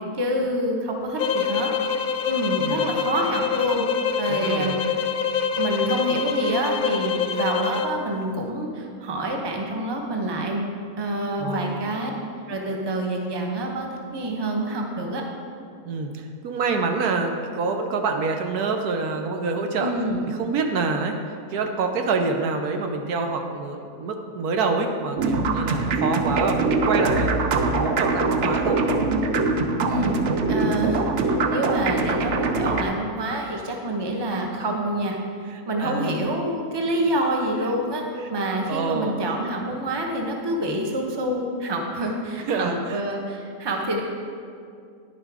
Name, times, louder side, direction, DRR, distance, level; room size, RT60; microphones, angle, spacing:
voice 1, 0.2-1.7 2.3-3.9 4.2-4.8 5.6-10.6 11.0-12.1 12.5-15.2 19.8-20.2 29.9-30.2 30.5-35.2 35.7-38.0 38.3-44.0, right 1 dB, 20° right, 1 dB, 0.8 m, -27 dB
sound 1, 1.2-8.0, left 7 dB, 70° left, 0.9 m, -25 dB
voice 2, 2.6-3.0 4.3-4.9 11.4-12.0 15.8-19.9 20.3-21.2 21.5-27.3 27.6-28.8 32.0-32.1 35.5-36.2 38.7-39.3 42.5-42.8, right 4 dB, 75° right, 4 dB, 1.3 m, -27 dB
sound 2, 25.2-32.8, right 3 dB, 60° right, 0.9 m, -23 dB
10.5 x 7.2 x 4.8 m, 2.3 s
omnidirectional pair, 1.6 m